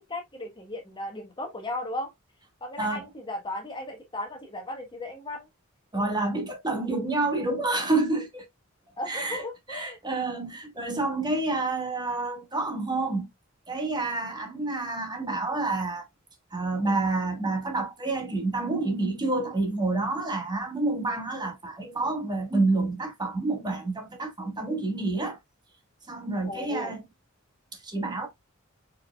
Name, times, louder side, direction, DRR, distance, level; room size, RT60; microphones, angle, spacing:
voice 1, 0.0-2.1 2.6-5.5 9.0-10.0 26.5-26.9, left 1 dB, 25° left, 1.0 m, -36 dB
voice 2, 5.9-8.4 9.1-13.3 13.7-16.0 16.5-25.4 26.1-27.0 27.8-28.3, right 2 dB, 20° right, 1.3 m, -28 dB
4.7 x 4.5 x 2.2 m
head